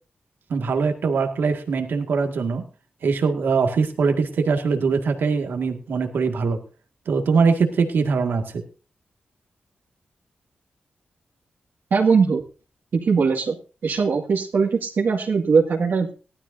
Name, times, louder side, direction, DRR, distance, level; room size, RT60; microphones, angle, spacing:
voice 1, 0.5-2.7 3.0-6.6 7.1-8.6, right 5 dB, 90° right, 4 dB, 2.0 m, -22 dB
voice 2, 11.9-12.4 12.9-13.5 13.8-16.1, right 5 dB, 75° right, -1 dB, 2.1 m, -20 dB
18.5 x 13.0 x 2.7 m, 0.34 s
wide cardioid pair, 100°, 3 cm